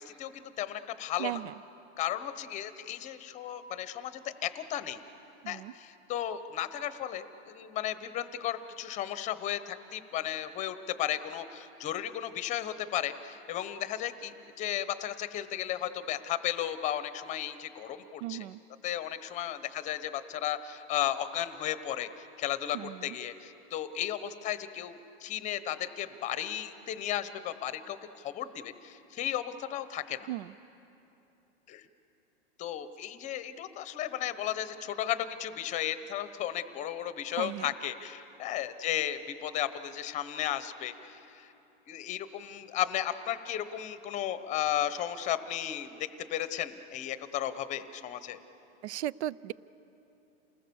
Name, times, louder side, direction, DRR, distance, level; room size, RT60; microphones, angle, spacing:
voice 1, 0.0-1.4 2.0-5.0 5.5-18.5 18.8-30.3 31.7-31.8 32.6-41.5 41.9-48.4, left 11 dB, 20° left, 12 dB, 0.9 m, -34 dB
voice 2, 1.2-1.5 5.4-5.7 18.2-18.6 22.7-23.2 30.3-30.5 37.4-37.7 48.8-49.5, right 14 dB, 75° right, 22 dB, 0.5 m, -36 dB
29.0 x 20.0 x 7.0 m, 2.9 s
supercardioid pair, 150°, 34 cm